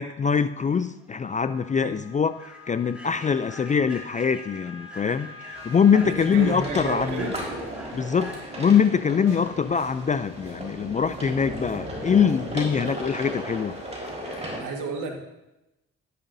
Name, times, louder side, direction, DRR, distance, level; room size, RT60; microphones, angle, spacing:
voice 1, 0.0-7.3 7.9-13.8, left 6 dB, 25° left, 12 dB, 0.4 m, -23 dB
Human voice / Train, 1.0-1.1 1.6-1.8 2.3-9.9, left 1 dB, 5° right, 2.2 m, -46 dB
Wind instrument woodwind instrument, 1.4-7.1, left 4 dB, 70° left, 2.5 m, -45 dB
sound 1, 5.5-14.6, right 1 dB, 20° right, 4.3 m, -36 dB
voice 2, 5.9-7.3 9.3-9.4 14.6-15.2, right 4 dB, 85° right, 2 dB, 1.7 m, -32 dB
13.0 x 11.0 x 2.7 m, 0.96 s
cardioid pair, 90°, 30 cm